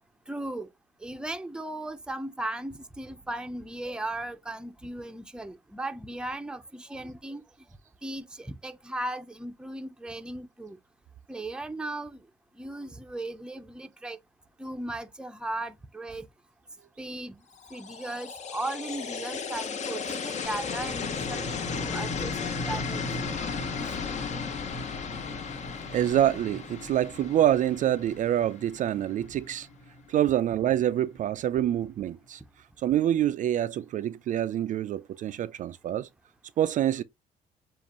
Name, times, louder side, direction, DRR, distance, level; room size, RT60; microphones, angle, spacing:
voice 1, 0.3-0.7 1.0-7.4 8.0-10.8 11.3-12.2 12.6-14.2 14.6-16.3 17.0-17.4 17.7-23.3, right 1 dB, 5° right, 0.6 m, -37 dB
sound 1, 17.6-28.6, left 6 dB, 45° left, 0.9 m, -35 dB
sound 2, 20.4-31.4, left 2 dB, 65° left, 2.9 m, -40 dB
voice 2, 25.9-29.7 30.1-32.4 32.8-36.1 36.6-37.0, right 11 dB, 50° right, 0.4 m, -26 dB
7.2 x 2.5 x 2.9 m
cardioid pair, 110°, 17 cm